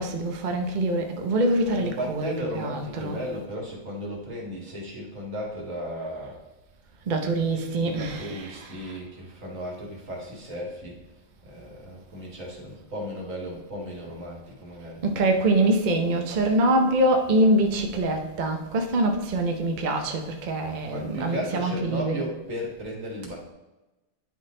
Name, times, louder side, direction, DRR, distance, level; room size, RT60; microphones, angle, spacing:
voice 1, 0.0-3.2 7.1-9.0 15.0-22.3, right 1 dB, 40° right, 0.8 m, -24 dB
voice 2, 1.8-6.4 7.7-11.0 11.4-15.0 20.8-23.5, equal, 90° right, 2.3 m, -35 dB
10.5 x 4.1 x 3.7 m
omnidirectional pair, 1.3 m